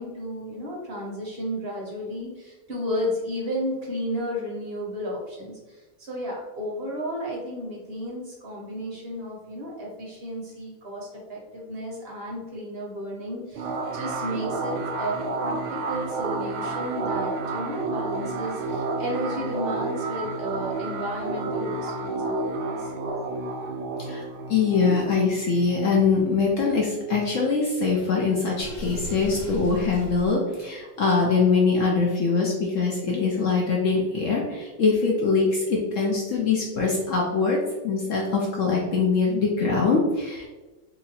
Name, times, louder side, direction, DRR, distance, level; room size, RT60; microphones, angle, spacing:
voice 1, 0.0-22.9, equal, 50° right, -3 dB, 0.7 m, -33 dB
sound 1, 13.6-26.8, right 3 dB, 70° right, 1.0 m, -31 dB
voice 2, 24.0-37.6 37.8-40.5, left 4 dB, 75° left, -2 dB, 0.7 m, -23 dB
Water / Sink (filling or washing), 28.6-30.3, equal, 50° left, 1.1 m, -36 dB
2.8 x 2.8 x 4.1 m, 1.2 s
omnidirectional pair, 2.0 m